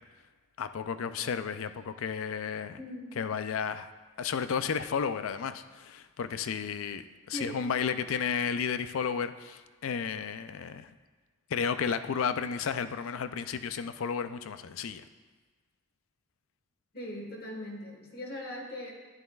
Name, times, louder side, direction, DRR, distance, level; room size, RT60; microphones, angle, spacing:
voice 1, 0.6-2.8 3.2-3.9 4.2-10.9 11.5-15.1, left 6 dB, 75° left, 11 dB, 0.4 m, -33 dB
voice 2, 2.8-3.2 7.3-7.6 16.9-18.9, left 1 dB, 45° left, 0 dB, 1.5 m, -40 dB
11.0 x 11.0 x 2.3 m, 1.4 s
head